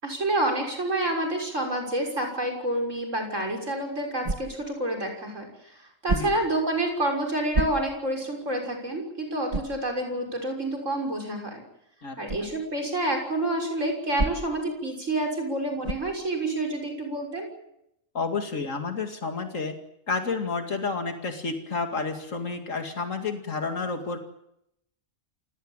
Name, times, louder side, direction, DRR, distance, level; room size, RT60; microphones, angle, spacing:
voice 1, 0.0-11.6 12.2-17.5, right 1 dB, 75° right, 2 dB, 6.5 m, -28 dB
sound 1, 4.2-4.8 6.0-6.6 7.5-8.1 8.6-8.7 9.5-9.8 12.3-12.5 14.2-14.7 15.8-16.2, right 2 dB, 30° right, 1.4 m, -29 dB
voice 2, 18.1-19.7 20.1-24.2, left 4 dB, 85° left, 5 dB, 2.7 m, -30 dB
28.0 x 17.5 x 9.0 m, 0.79 s
omnidirectional pair, 1.3 m